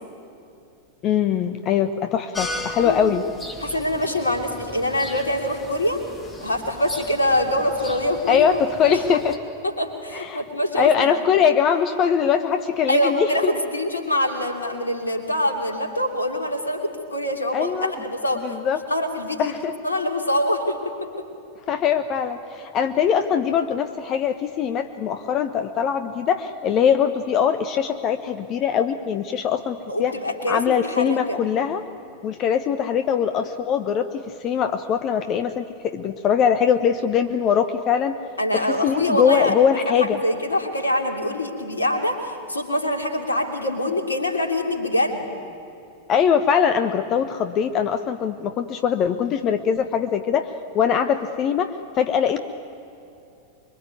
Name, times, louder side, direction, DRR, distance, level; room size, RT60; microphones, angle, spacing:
voice 1, 1.0-3.2 8.3-9.4 10.1-10.4 10.7-13.3 17.5-17.9 18.4-18.8 19.4-19.7 21.7-30.1 30.5-31.8 32.2-38.2 38.7-40.2 46.1-52.6, left 8 dB, 35° left, 9 dB, 1.1 m, -22 dB
sound 1, 2.3-9.4, left 2 dB, 15° left, 2.8 m, -37 dB
voice 2, 3.6-6.0 6.4-8.6 8.8-9.2 9.6-11.1 12.9-18.6 18.9-19.5 19.8-21.2 29.9-31.4 38.4-39.5 39.8-45.3, left 1 dB, 80° left, 4 dB, 3.0 m, -24 dB
25.0 x 23.5 x 9.4 m, 2.7 s
figure-of-eight pair, 90°, 0 cm